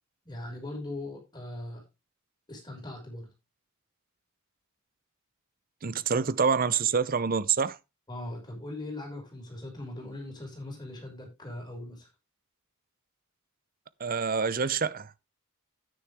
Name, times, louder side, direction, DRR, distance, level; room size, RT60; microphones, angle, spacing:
voice 1, 0.3-1.8 2.5-3.3 8.1-12.1, left 1 dB, 20° left, 5.6 m, -40 dB
voice 2, 5.8-7.8 14.0-15.3, right 6 dB, 40° right, 0.7 m, -27 dB
10.5 x 9.6 x 3.5 m
head